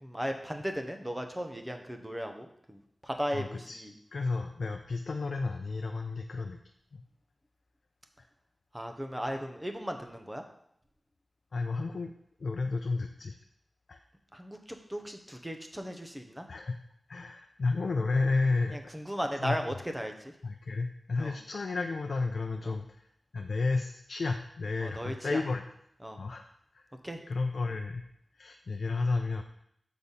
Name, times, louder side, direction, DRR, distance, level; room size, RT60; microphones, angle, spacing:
voice 1, 0.0-3.9 8.7-10.4 14.3-16.5 18.7-20.3 21.2-21.4 22.6-22.8 24.8-25.4 26.0-26.2 27.0-27.2, equal, 10° right, 4 dB, 0.8 m, -36 dB
voice 2, 3.3-3.8 4.1-6.6 6.9-7.0 11.5-12.1 12.4-13.4 13.9-14.0 16.5-16.8 17.1-18.8 19.4-19.6 20.4-23.1 23.3-25.6 26.2-26.4 26.7-26.9 27.3-28.1 28.4-29.4, left 3 dB, 80° left, 4 dB, 0.5 m, -32 dB
6.6 x 4.0 x 5.5 m, 0.72 s
wide cardioid pair, 85°, 0 cm